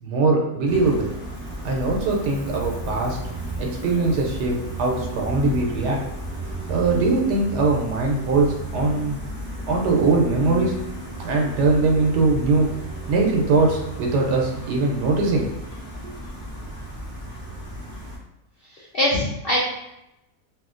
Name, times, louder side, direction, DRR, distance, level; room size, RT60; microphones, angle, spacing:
voice 1, 0.0-1.1 1.6-3.2 3.6-6.0 6.7-9.2 9.7-10.8 11.2-12.7 13.1-15.4 16.0-16.1, right 3 dB, 90° right, 0 dB, 1.2 m, -21 dB
Gull seagull, 0.7-18.1, right 1 dB, 15° right, 0.4 m, -33 dB
voice 2, 18.7-19.6, left 1 dB, 80° left, -6 dB, 0.5 m, -23 dB
2.9 x 2.7 x 2.4 m, 0.89 s
omnidirectional pair, 1.7 m